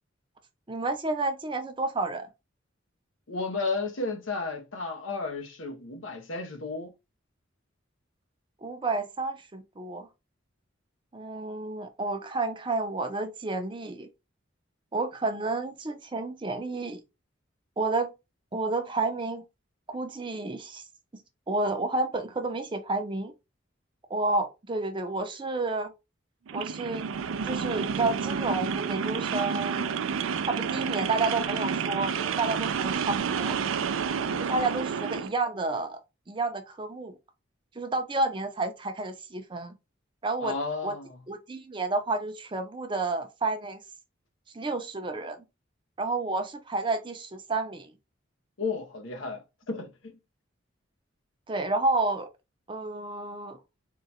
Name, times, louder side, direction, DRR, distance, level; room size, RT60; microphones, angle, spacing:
voice 1, 0.7-2.3 8.6-10.1 11.1-14.1 14.9-17.0 17.8-18.1 18.5-19.4 19.9-20.8 21.5-23.3 24.1-25.9 26.5-27.1 27.4-30.1 30.5-33.6 34.4-36.0 36.3-37.1 37.8-39.7 40.2-40.6 40.8-40.9 41.3-43.8 44.5-45.4 46.0-47.9 51.5-52.3 52.7-53.6, right 3 dB, 25° right, 0.5 m, -30 dB
voice 2, 3.3-6.9 34.2-34.4 40.4-41.2 48.6-50.2, left 3 dB, 80° left, 0.8 m, -33 dB
sound 1, 26.5-35.3, right 6 dB, 90° right, 0.4 m, -30 dB
3.7 x 2.2 x 4.1 m
head